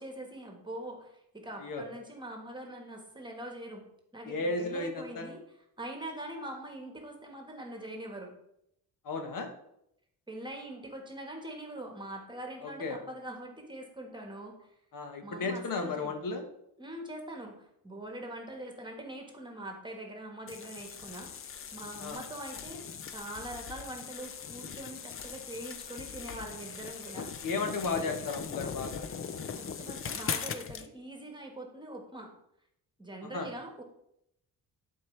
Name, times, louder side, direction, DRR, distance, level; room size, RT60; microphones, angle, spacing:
voice 1, 0.0-5.4 5.8-8.3 10.3-14.7 15.2-16.2 16.8-21.3 21.7-22.8 23.1-27.3 29.5-32.3 33.0-33.8, right 1 dB, 10° right, 2 dB, 1.4 m, -43 dB
voice 2, 4.2-5.3 9.0-9.5 12.6-13.0 14.9-16.4 22.0-22.2 27.4-29.1 33.3-33.5, left 3 dB, 55° left, 6 dB, 1.3 m, -34 dB
sound 1, 20.5-30.9, left 7 dB, 35° left, 0.5 m, -40 dB
11.5 x 4.6 x 3.2 m, 0.77 s
cardioid pair, 120°, 39 cm